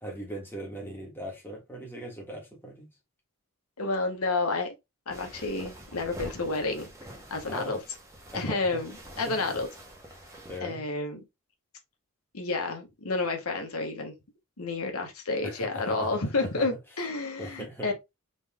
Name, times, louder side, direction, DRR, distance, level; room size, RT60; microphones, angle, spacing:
voice 1, 0.0-2.9 7.5-7.8 8.3-8.8 9.1-9.6 10.5-10.8 15.4-16.7 17.4-17.9, equal, 10° left, 1.5 m, -39 dB
voice 2, 3.8-4.7 5.1-6.9 7.3-7.8 8.3-8.9 9.2-9.7 10.6-11.2 12.3-14.1 14.6-17.9, left 3 dB, 90° left, 1.3 m, -30 dB
sound 1, 5.1-10.6, equal, 15° right, 1.1 m, -46 dB
4.1 x 3.2 x 3.6 m
head